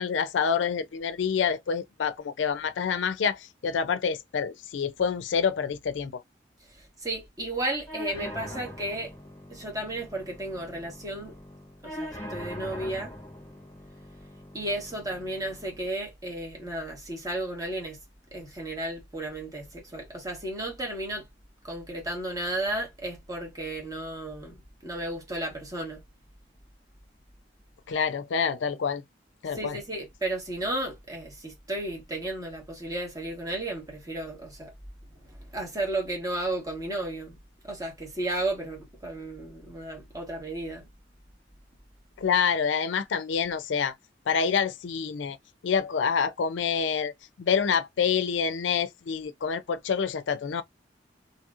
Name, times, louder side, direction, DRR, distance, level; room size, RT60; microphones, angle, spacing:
voice 1, 0.0-6.2 27.9-29.0 29.4-29.8 42.2-43.9 44.3-45.4 45.6-47.1 47.4-50.6, left 6 dB, 85° left, 0.4 m, -27 dB
voice 2, 6.8-9.1 9.5-11.4 11.8-13.1 14.5-18.0 18.3-21.3 21.6-26.0 29.5-34.7 35.3-37.3 37.6-40.9, right 1 dB, 20° right, 1.2 m, -33 dB
sound 1, 7.9-15.9, equal, 15° left, 1.3 m, -42 dB
2.9 x 2.7 x 2.4 m
head